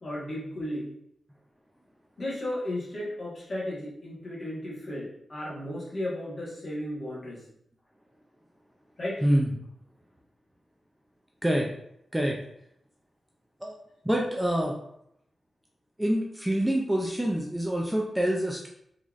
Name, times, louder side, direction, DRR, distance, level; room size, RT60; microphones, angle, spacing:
voice 1, 0.0-0.9 2.2-7.4 9.0-9.2, left 1 dB, 40° left, -6 dB, 1.2 m, -34 dB
voice 2, 14.0-14.7 16.0-18.7, right 1 dB, 5° right, -1 dB, 0.3 m, -26 dB
3.9 x 3.1 x 2.4 m, 0.75 s
wide cardioid pair, 155°, 0 cm